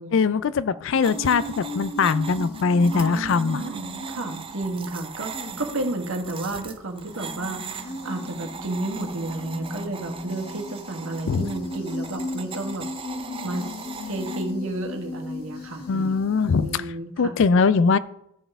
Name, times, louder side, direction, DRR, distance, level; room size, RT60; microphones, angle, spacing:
voice 1, 0.1-3.6 11.3-11.5 15.9-16.7 17.2-18.0, left 5 dB, 60° left, 17 dB, 0.4 m, -21 dB
sound 1, 0.9-6.6 7.2-16.8, left 1 dB, 40° left, 1.7 m, -37 dB
sound 2, 1.0-14.5, right 6 dB, 25° right, 0.4 m, -40 dB
voice 2, 2.9-12.9 13.4-13.6 14.0-17.3, right 2 dB, 65° right, 3 dB, 1.4 m, -32 dB
14.5 x 5.5 x 3.5 m, 0.80 s
head